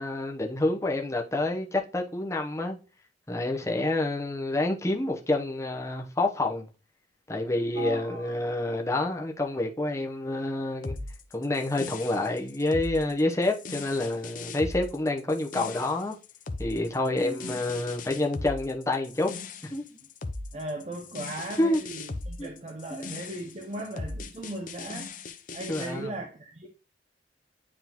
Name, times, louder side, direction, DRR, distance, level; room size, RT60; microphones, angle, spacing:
voice 1, 0.0-2.8 3.3-6.7 7.3-11.0 11.3-16.2 16.6-19.3 19.6-19.8 21.6-21.8 22.4-22.5 22.9-23.1 25.7-26.1, left 2 dB, 15° left, 0.8 m, -28 dB
voice 2, 7.7-8.4 17.1-17.5 20.5-26.7, right 1 dB, 35° right, 0.8 m, -38 dB
sound 1, 10.8-25.9, left 3 dB, 45° left, 0.6 m, -39 dB
9.4 x 3.7 x 3.0 m
head